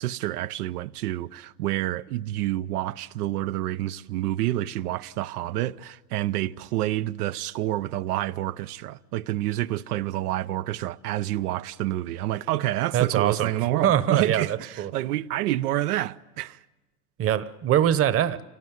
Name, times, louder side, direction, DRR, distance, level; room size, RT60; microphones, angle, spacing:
voice 1, 0.0-16.6, right 14 dB, 80° right, 0.7 m, -28 dB
voice 2, 12.9-13.5 13.8-14.4 14.8-14.9 17.2-18.4, right 10 dB, 30° right, 1.0 m, -22 dB
26.5 x 18.0 x 9.4 m
supercardioid pair, 120°, 45 cm